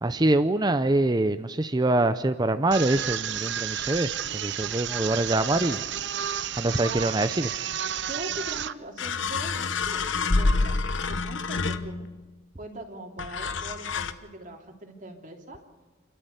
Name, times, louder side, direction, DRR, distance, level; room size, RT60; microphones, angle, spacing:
voice 1, 0.0-5.8 6.6-7.5, right 2 dB, 20° right, 10 dB, 0.6 m, -24 dB
sound 1, 2.7-8.7, right 9 dB, 60° right, 0.7 m, -31 dB
voice 2, 6.7-7.1 8.1-10.0 10.4-12.1 12.6-15.6, right 1 dB, 40° right, 3 dB, 3.0 m, -41 dB
sound 2, 8.3-8.4 9.0-12.2 13.2-14.1, left 3 dB, 65° left, 1.0 m, -27 dB
30.0 x 13.0 x 8.1 m, 1.4 s
head